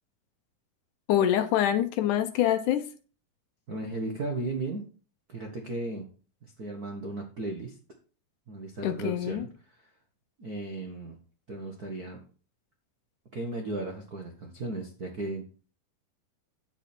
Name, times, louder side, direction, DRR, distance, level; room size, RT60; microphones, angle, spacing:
voice 1, 1.1-2.9 8.8-9.5, left 11 dB, 75° left, 2.0 m, -25 dB
voice 2, 3.7-4.8 5.3-6.1 6.4-7.7 8.5-9.8 10.4-11.2 11.5-12.2 13.3-15.4, right 2 dB, 70° right, 0.9 m, -35 dB
9.1 x 8.2 x 4.4 m
omnidirectional pair, 4.0 m